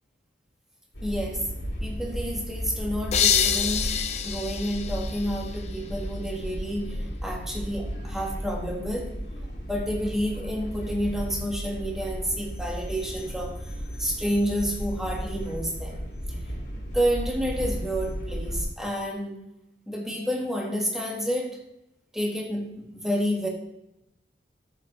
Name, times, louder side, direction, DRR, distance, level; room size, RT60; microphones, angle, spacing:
sound 1, 0.9-18.6, equal, 70° left, 2.5 m, -34 dB
voice 1, 1.0-1.5 1.8-3.9 4.2-6.9 7.2-9.1 9.6-13.6 14.0-16.0 16.9-19.3 19.9-21.6 22.1-23.5, equal, 5° right, -1 dB, 1.7 m, -29 dB
sound 2, 3.1-5.9, left 8 dB, 35° left, 0.5 m, -26 dB
13.0 x 6.9 x 3.1 m, 0.87 s
head